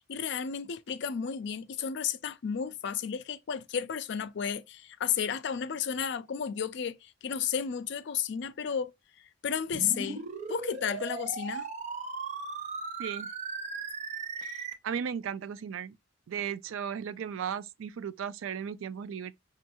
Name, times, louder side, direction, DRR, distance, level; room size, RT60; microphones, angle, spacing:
voice 1, 0.0-8.9 9.4-11.7, left 7 dB, 60° left, 0.4 m, -33 dB
sound 1, 9.7-14.7, right 4 dB, 35° right, 0.6 m, -37 dB
voice 2, 13.0-13.3 14.4-16.0 16.3-19.3, right 7 dB, 85° right, 0.3 m, -36 dB
5.3 x 2.4 x 2.8 m
head